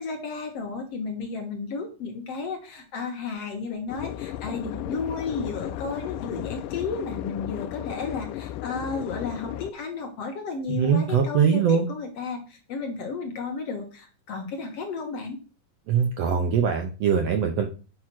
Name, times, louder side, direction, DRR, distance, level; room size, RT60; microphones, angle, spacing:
voice 1, 0.0-15.4, left 4 dB, 55° left, 4 dB, 2.0 m, -33 dB
sound 1, 3.9-9.7, left 13 dB, 80° left, 2.1 m, -35 dB
voice 2, 10.7-11.9 15.9-17.7, right 7 dB, 70° right, 4 dB, 1.6 m, -22 dB
9.3 x 4.9 x 6.0 m, 0.35 s
omnidirectional pair, 3.9 m